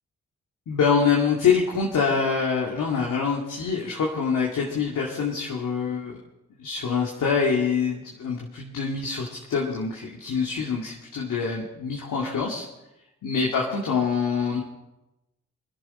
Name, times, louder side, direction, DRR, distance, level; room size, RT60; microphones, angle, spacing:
voice 1, 0.7-6.2 6.6-12.7 13.2-14.6, left 5 dB, 65° left, -3 dB, 2.4 m, -25 dB
24.5 x 10.5 x 4.4 m, 0.95 s
hypercardioid pair, 40°, 33 cm